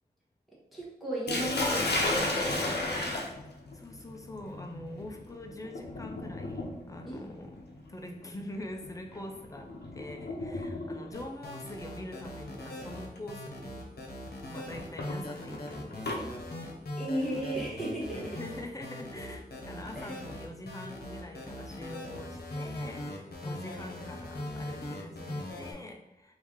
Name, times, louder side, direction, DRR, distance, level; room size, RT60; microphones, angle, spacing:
voice 1, 0.7-3.1 7.1-7.2 17.0-18.2 19.9-20.2, right 1 dB, ahead, -5 dB, 1.0 m, -35 dB
Sink (filling or washing), 1.3-11.2 12.3-12.6 13.2-13.3 14.7-16.2, left 2 dB, 90° left, 0.6 m, -34 dB
voice 2, 3.1-7.6 7.9-14.0 14.5-16.3 18.1-26.4, left 1 dB, 20° left, 3 dB, 0.5 m, -44 dB
sound 1, 11.1-25.7, left 1 dB, 65° left, 0.9 m, -40 dB
3.3 x 2.7 x 3.6 m, 0.94 s
wide cardioid pair, 75°, 17 cm